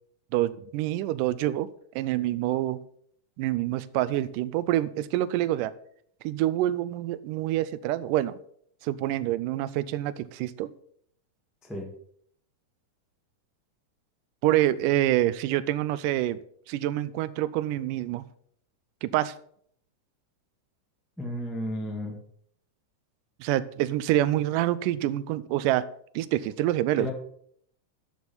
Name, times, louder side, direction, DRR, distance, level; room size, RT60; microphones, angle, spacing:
voice 1, 0.3-1.7 2.0-2.8 3.4-5.7 6.2-8.4 8.8-10.7 14.4-16.4 16.7-18.2 19.0-19.3 23.4-25.8 26.2-27.1, right 14 dB, 90° right, 17 dB, 2.2 m, -26 dB
voice 2, 21.2-22.2 27.0-27.1, equal, ahead, 0 dB, 0.7 m, -33 dB
11.5 x 6.4 x 5.5 m, 0.66 s
omnidirectional pair, 3.7 m